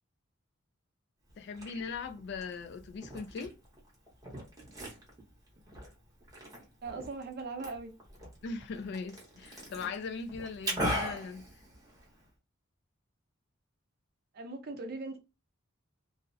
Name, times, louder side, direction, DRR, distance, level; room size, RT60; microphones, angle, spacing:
Liquid, 1.3-12.3, equal, 20° right, 0.8 m, -41 dB
voice 1, 1.4-3.5 8.4-11.4, left 5 dB, 55° left, 0.3 m, -39 dB
voice 2, 6.8-7.9 14.3-15.2, right 3 dB, 50° right, 0.6 m, -39 dB
2.4 x 2.0 x 2.5 m
head